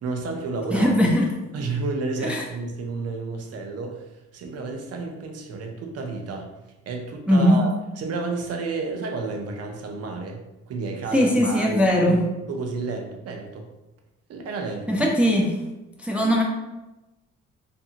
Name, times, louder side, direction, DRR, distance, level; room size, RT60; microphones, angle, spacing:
voice 1, 0.0-0.9 1.5-4.0 4.3-6.5 6.9-10.4 10.7-12.2 12.5-13.7 14.3-15.0, right 3 dB, 55° right, 3 dB, 0.6 m, -31 dB
voice 2, 0.7-1.3 2.2-2.4 7.3-7.6 11.1-12.2 14.9-15.5 16.0-16.4, equal, 5° right, 0 dB, 0.3 m, -19 dB
2.7 x 2.6 x 2.5 m, 1.0 s
cardioid pair, 90°, 30 cm